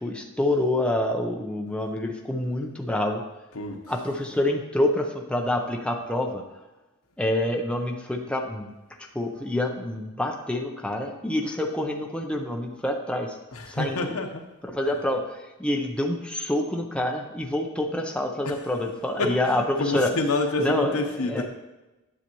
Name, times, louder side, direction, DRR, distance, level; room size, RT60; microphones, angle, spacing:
voice 1, 0.0-3.2 3.9-6.4 7.2-8.7 9.1-13.3 13.7-14.1 14.6-15.2 15.6-20.1 20.6-21.5, left 1 dB, 5° left, 1 dB, 0.7 m, -27 dB
voice 2, 13.5-14.4 19.2-21.5, left 2 dB, 80° left, 4 dB, 0.9 m, -28 dB
10.0 x 6.6 x 3.0 m, 1.1 s
head